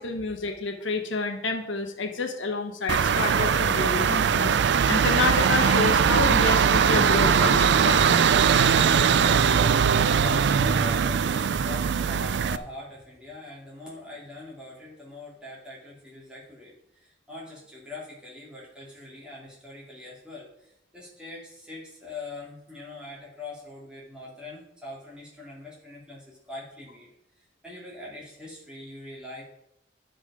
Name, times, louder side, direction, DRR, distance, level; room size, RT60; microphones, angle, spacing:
voice 1, 0.0-8.1, left 3 dB, 90° left, 4 dB, 1.1 m, -29 dB
sound 1, 2.9-12.6, right 7 dB, 70° right, 0.4 m, -21 dB
voice 2, 9.5-27.1 27.4-29.4, left 2 dB, 5° right, -6 dB, 2.7 m, -42 dB
10.5 x 5.2 x 4.9 m, 0.79 s
head